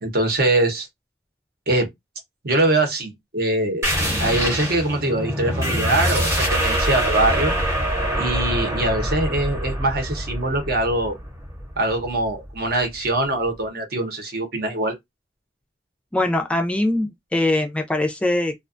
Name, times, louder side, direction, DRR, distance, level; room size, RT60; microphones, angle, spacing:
voice 1, 0.0-0.9 1.7-1.9 2.4-3.9 4.2-7.5 8.2-11.2 11.8-14.9, right 2 dB, 60° right, 0.8 m, -23 dB
sound 1, 3.8-13.0, equal, 15° right, 0.8 m, -24 dB
voice 2, 16.1-18.5, left 1 dB, 5° left, 0.3 m, -22 dB
2.4 x 2.2 x 2.4 m
head